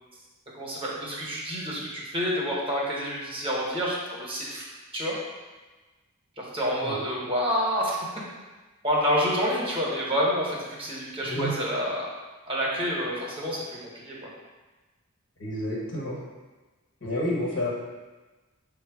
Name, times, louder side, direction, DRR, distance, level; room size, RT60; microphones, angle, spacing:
voice 1, 0.5-4.7 4.9-5.2 6.4-8.0 8.8-12.0 12.5-13.6 13.9-14.3, equal, 25° right, -4 dB, 0.9 m, -28 dB
voice 2, 11.2-11.5 15.4-16.2 17.0-17.7, left 1 dB, 60° left, -4 dB, 1.2 m, -29 dB
5.5 x 2.1 x 4.5 m, 1.2 s
head